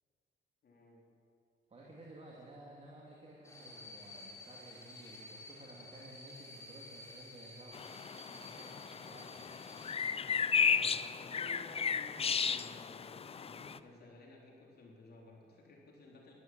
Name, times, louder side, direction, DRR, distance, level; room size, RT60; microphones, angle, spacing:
voice 1, 0.6-1.1 10.5-16.3, left 2 dB, 55° left, -2 dB, 3.6 m, -55 dB
voice 2, 1.7-7.9 8.3-9.6, right 1 dB, 30° right, -4 dB, 2.7 m, -54 dB
sound 1, 3.4-9.9, left 2 dB, 15° left, 3.8 m, -52 dB
sound 2, 7.7-13.8, left 6 dB, 30° left, 0.5 m, -34 dB
12.5 x 12.0 x 7.7 m, 2.4 s
cardioid pair, 90°, 20 cm